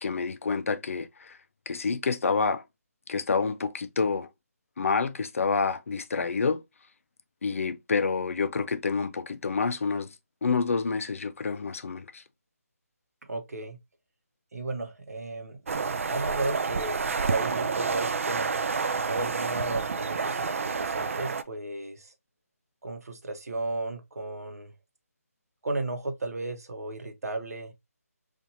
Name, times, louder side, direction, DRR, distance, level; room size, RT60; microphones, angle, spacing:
voice 1, 0.0-1.4 1.7-2.6 3.1-4.3 4.8-6.6 7.4-10.1 10.4-12.2, left 5 dB, 55° left, 0.4 m, -28 dB
voice 2, 13.2-13.8 14.5-15.6 16.1-18.5 19.0-22.1 22.8-24.7 25.6-27.7, right 2 dB, 70° right, 0.9 m, -34 dB
sound 1, 15.7-21.4, right 5 dB, 55° right, 0.3 m, -29 dB
4.1 x 2.5 x 2.7 m
figure-of-eight pair, 165°, 9 cm